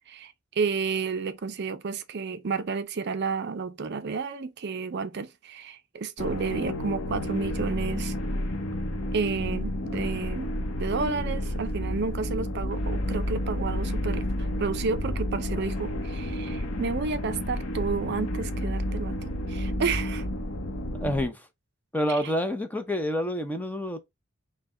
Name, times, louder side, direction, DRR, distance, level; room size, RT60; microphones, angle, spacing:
voice 1, 0.1-8.1 9.1-10.5 10.8-14.3 14.6-20.3 22.1-22.3, right 4 dB, 50° right, 0.5 m, -31 dB
sound 1, 6.2-21.2, left 1 dB, 80° left, 0.8 m, -31 dB
voice 2, 21.0-21.4 21.9-24.0, equal, 10° left, 0.5 m, -28 dB
5.7 x 2.2 x 3.7 m
head